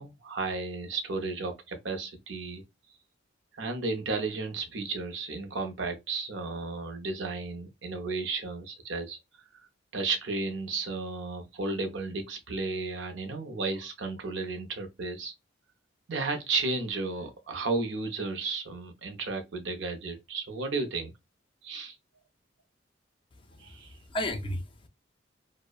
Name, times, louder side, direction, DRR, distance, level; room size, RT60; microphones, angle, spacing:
voice 1, 0.0-2.6 3.6-9.2 9.9-15.3 16.1-21.1 21.6-22.0 23.6-24.0, right 3 dB, 70° right, 0.6 m, -33 dB
voice 2, 23.3-24.9, left 1 dB, 25° left, 0.4 m, -35 dB
2.7 x 2.0 x 2.3 m
head